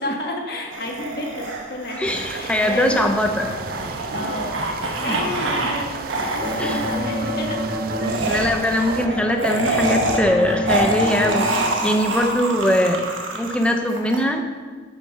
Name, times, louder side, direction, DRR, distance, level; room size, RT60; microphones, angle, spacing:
voice 1, 0.0-3.1 4.1-6.0 6.6-7.6 8.1-8.9, left 1 dB, 55° left, 0 dB, 1.4 m, -31 dB
sound 1, 0.7-5.8 6.1-7.0 8.0-14.2, right 2 dB, 90° right, 1.4 m, -26 dB
voice 2, 2.0-3.5 5.0-5.2 6.6-6.8 8.3-13.0 13.3-14.4, left 1 dB, 5° left, 4 dB, 0.6 m, -21 dB
sound 2, 2.0-9.1, right 4 dB, 50° right, 0.4 m, -34 dB
sound 3, 6.4-8.2 8.8-11.7, equal, 70° right, 2.3 m, -27 dB
8.8 x 6.5 x 5.6 m, 1.5 s
head